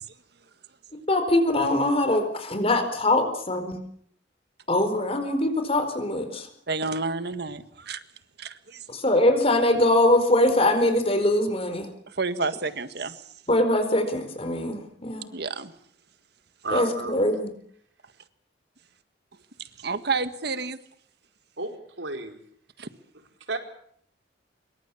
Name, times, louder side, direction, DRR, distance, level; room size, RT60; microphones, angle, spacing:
voice 1, 1.1-3.8 4.7-6.5 8.9-11.9 13.5-15.2 16.7-17.5, left 1 dB, 35° left, 8 dB, 4.5 m, -22 dB
voice 2, 6.7-8.0 8.4-9.0 12.1-13.2 15.3-15.7 19.6-20.8 22.8-22.9, right 4 dB, 60° right, 11 dB, 1.7 m, -30 dB
voice 3, 16.6-17.2 21.6-22.4 23.5-23.6, right 2 dB, 90° right, 4 dB, 4.8 m, -32 dB
26.0 x 23.5 x 7.2 m, 0.65 s
head